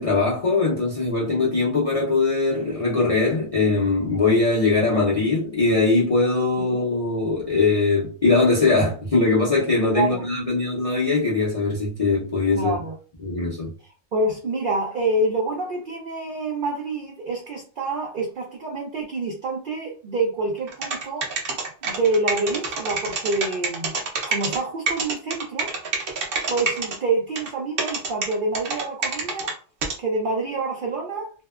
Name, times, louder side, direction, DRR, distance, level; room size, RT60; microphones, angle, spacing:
voice 1, 0.0-12.8 13.2-13.7, left 3 dB, 55° left, 0.4 m, -21 dB
voice 2, 12.5-13.0 14.1-21.3 21.8-23.9 24.3-25.7 26.5-29.5 30.0-31.3, right 2 dB, 85° right, 0.4 m, -27 dB
sound 1, 20.7-24.6 24.9-27.0 27.4-27.5 27.8-29.5 29.8-29.9, right 4 dB, 55° right, 0.7 m, -26 dB
2.7 x 2.1 x 2.3 m
omnidirectional pair, 1.4 m